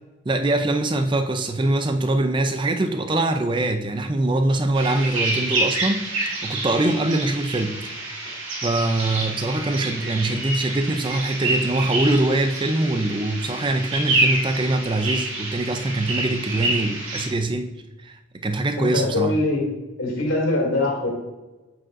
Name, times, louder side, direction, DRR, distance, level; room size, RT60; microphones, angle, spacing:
voice 1, 0.3-8.0 8.6-17.7 18.0-19.3, right 2 dB, 25° right, 0.4 m, -23 dB
sound 1, 4.8-17.3, right 2 dB, 70° right, 1.7 m, -27 dB
voice 2, 18.8-19.6 20.0-21.1, left 2 dB, 70° left, 2.3 m, -22 dB
7.7 x 7.6 x 2.5 m
head